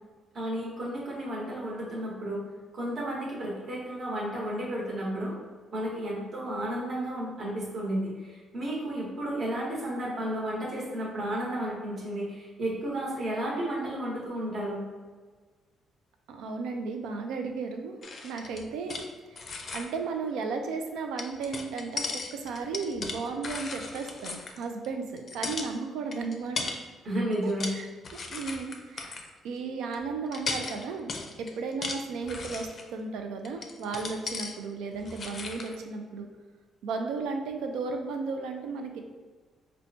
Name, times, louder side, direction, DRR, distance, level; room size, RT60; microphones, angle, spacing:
voice 1, 0.3-2.4 2.7-5.3 5.7-14.8 27.0-27.7, right 1 dB, 50° right, -6 dB, 1.1 m, -32 dB
voice 2, 16.3-18.0 18.2-19.0 19.4-19.5 19.7-26.6 27.4-27.8 28.3-29.2 29.4-31.1 31.4-36.3 36.8-39.0, right 4 dB, 90° right, 4 dB, 0.4 m, -34 dB
sound 1, 18.0-19.1 19.4-19.9 21.2-24.9 25.2-25.7 26.1-26.8 27.3-27.8 28.0-29.3 29.9-30.0 30.3-32.9 33.4-34.6 34.9-35.8, left 4 dB, 50° left, 0.4 m, -37 dB
4.3 x 2.2 x 2.6 m, 1.4 s
cardioid pair, 90°, 0 cm